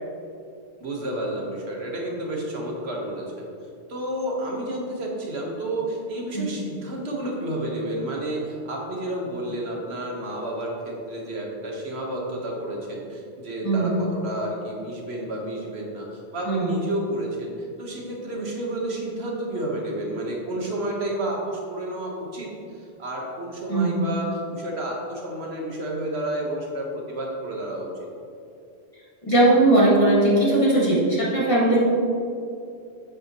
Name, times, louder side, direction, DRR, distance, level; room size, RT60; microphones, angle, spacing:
voice 1, 0.8-3.5 3.9-27.9, right 1 dB, 75° right, -1 dB, 1.6 m, -31 dB
voice 2, 13.6-14.0 16.5-16.7 23.7-24.0 29.2-31.8, right 1 dB, 30° left, -6 dB, 2.0 m, -19 dB
8.5 x 8.3 x 3.0 m, 2.6 s
omnidirectional pair, 1.1 m